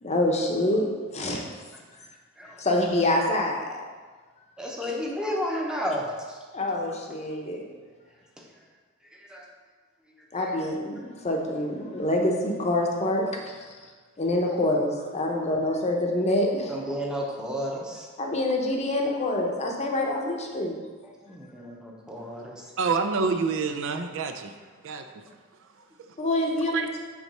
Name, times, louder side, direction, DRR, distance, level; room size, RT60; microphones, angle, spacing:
voice 1, 0.0-0.9 1.1-1.4 2.6-3.7 4.8-4.9 6.5-7.6 10.3-13.6 14.2-16.8 18.2-20.8 26.2-26.9, left 1 dB, 30° left, 1 dB, 0.7 m, -26 dB
voice 2, 4.6-6.4 8.4-8.5 9.1-9.5 10.4-10.5 16.7-18.1 21.0-22.6, equal, 5° right, -2 dB, 0.8 m, -32 dB
voice 3, 22.8-24.5 24.8-25.1 26.7-26.9, right 4 dB, 65° right, 7 dB, 0.4 m, -27 dB
6.0 x 3.1 x 5.5 m, 1.4 s
head